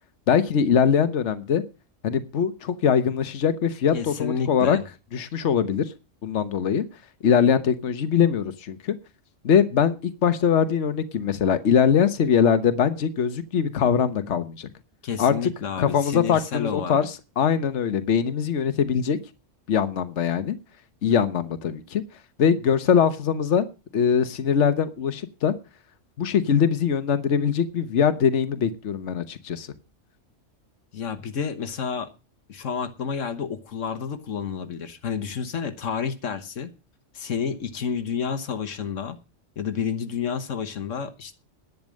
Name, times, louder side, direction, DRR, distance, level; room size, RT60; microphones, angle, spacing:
voice 1, 0.3-1.6 2.0-4.8 5.1-5.8 6.2-6.8 7.2-8.9 9.4-14.7 15.2-15.5 15.8-19.2 19.7-20.6 21.0-22.0 22.4-23.7 23.9-25.5 26.2-29.7, left 7 dB, 70° left, 12 dB, 1.3 m, -22 dB
voice 2, 3.9-4.8 15.0-17.1 30.9-32.1 32.5-36.7 37.1-39.2 39.6-41.3, left 6 dB, 90° left, 8 dB, 1.5 m, -30 dB
10.5 x 9.6 x 6.4 m, 0.31 s
omnidirectional pair, 1.3 m